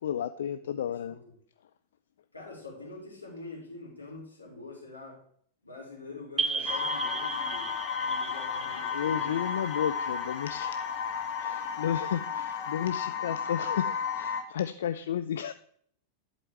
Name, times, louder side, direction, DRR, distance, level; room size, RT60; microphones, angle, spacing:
voice 1, 0.0-1.2 6.6-6.8 8.9-10.9 11.4-15.5, left 9 dB, 60° left, 11 dB, 0.3 m, -32 dB
voice 2, 0.6-1.2 2.3-5.2 5.6-7.7 8.0-9.4, left 3 dB, 85° left, -3 dB, 2.9 m, -45 dB
sound 1, 6.4-10.8, right 4 dB, 20° right, 0.3 m, -36 dB
sound 2, 6.7-14.4, left 6 dB, 45° left, 1.2 m, -33 dB
11.0 x 4.2 x 4.7 m, 0.63 s
figure-of-eight pair, 90°, 0 cm